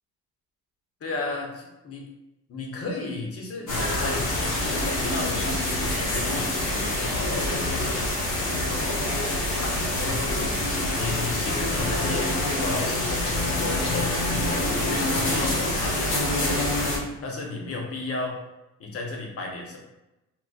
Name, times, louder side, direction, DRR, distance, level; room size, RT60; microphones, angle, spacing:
voice 1, 1.0-2.0 2.5-8.3 9.5-10.7 10.9-18.4 18.8-19.8, left 3 dB, 50° left, 0 dB, 0.8 m, -34 dB
sound 1, 3.7-17.0, left 1 dB, 80° left, 0.9 m, -26 dB
3.8 x 2.1 x 2.4 m, 0.95 s
cardioid pair, 90°, 30 cm